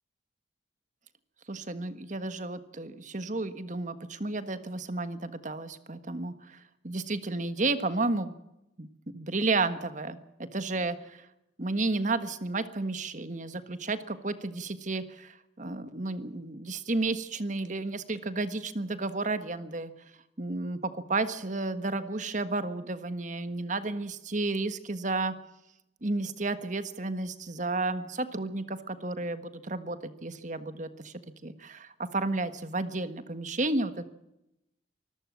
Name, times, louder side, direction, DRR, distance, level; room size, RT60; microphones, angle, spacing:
voice 1, 1.5-8.3 8.8-8.9 9.1-11.3 11.6-19.9 20.4-25.3 26.0-31.1 31.4-34.1, right 2 dB, 40° right, 11 dB, 1.5 m, -32 dB
25.0 x 13.5 x 8.6 m, 0.88 s
head